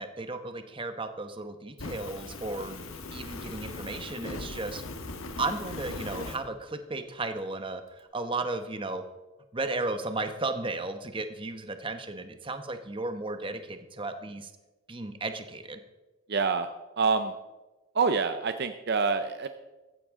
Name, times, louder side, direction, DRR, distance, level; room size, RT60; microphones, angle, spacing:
voice 1, 0.0-2.7 3.1-4.8 5.4-9.1 9.5-14.5 14.9-15.8, right 2 dB, 25° right, 8 dB, 1.0 m, -34 dB
Fire, 1.8-6.4, left 2 dB, 65° left, 1.4 m, -39 dB
voice 2, 16.3-16.7 17.0-17.3 17.9-19.5, right 4 dB, 50° right, 8 dB, 0.6 m, -26 dB
15.5 x 14.0 x 3.7 m, 1.1 s
head